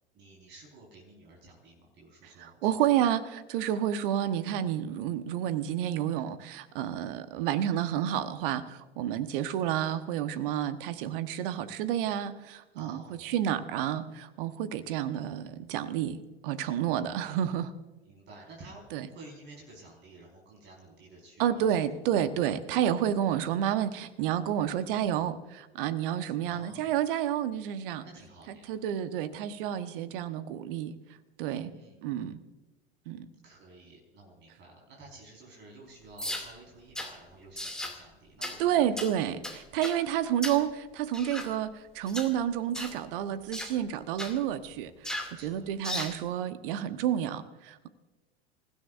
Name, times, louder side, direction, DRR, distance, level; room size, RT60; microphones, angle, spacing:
voice 1, 0.1-2.9 12.7-13.3 18.0-21.8 26.4-26.9 28.0-28.8 31.7-32.0 33.4-39.0 45.3-45.7, right 2 dB, 35° right, -1 dB, 4.8 m, -52 dB
voice 2, 2.4-17.7 18.9-19.1 21.4-28.0 28.5-30.9 31.4-31.7 32.0-32.4 33.1-33.3 38.6-47.9, right 10 dB, 55° right, 11 dB, 1.2 m, -30 dB
sound 1, 36.2-36.5 36.9-37.1 37.6-38.0 38.4-38.6 39.0-39.1 39.4-40.0 40.4-40.6 41.1-41.5 42.1-42.3 42.7-43.0 43.5-43.7 44.2-44.4 45.0-45.3 45.8-46.2, left 1 dB, ahead, 2.5 m, -36 dB
28.0 x 16.0 x 2.6 m, 1.2 s
figure-of-eight pair, 85°, 33 cm